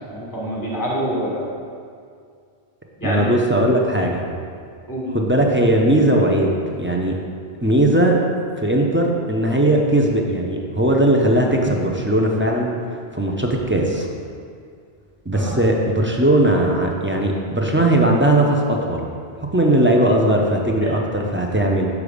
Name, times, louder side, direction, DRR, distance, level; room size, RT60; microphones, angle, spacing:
voice 1, 0.1-1.5 3.0-3.3 4.9-5.1 15.3-15.6 20.8-20.9, equal, 20° left, -5 dB, 1.7 m, -26 dB
voice 2, 3.0-4.2 5.1-7.2 7.6-8.2 8.6-12.7 13.1-14.1 15.3-19.1 19.5-21.9, right 1 dB, 15° right, 0 dB, 0.5 m, -18 dB
6.7 x 4.9 x 5.1 m, 2.3 s
omnidirectional pair, 1.1 m